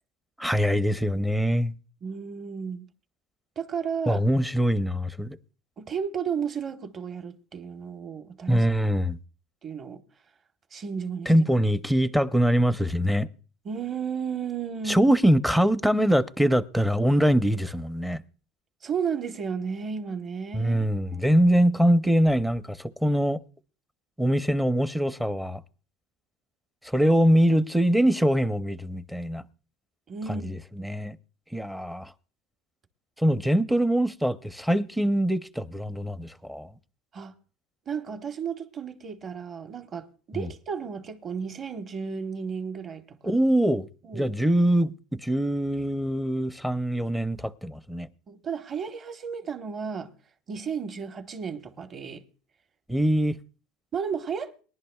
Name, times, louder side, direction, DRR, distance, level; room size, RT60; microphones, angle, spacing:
voice 1, 0.4-1.7 4.1-5.4 8.5-9.2 11.3-13.3 14.9-18.2 20.5-23.4 24.2-25.6 26.9-29.4 30.3-31.2 31.5-32.1 33.2-36.7 40.3-40.5 43.2-43.9 44.1-48.1 52.9-53.4, equal, 5° right, 0.6 m, -23 dB
voice 2, 2.0-2.9 3.6-4.2 5.8-8.7 9.6-10.0 10.7-11.3 13.6-15.1 18.8-21.3 30.1-30.5 30.8-30.9 37.1-37.3 37.9-43.4 44.0-44.3 48.3-50.1 50.5-52.2 53.9-54.5, right 6 dB, 30° right, 1.3 m, -33 dB
22.0 x 11.5 x 2.3 m
supercardioid pair, 130°, 0 cm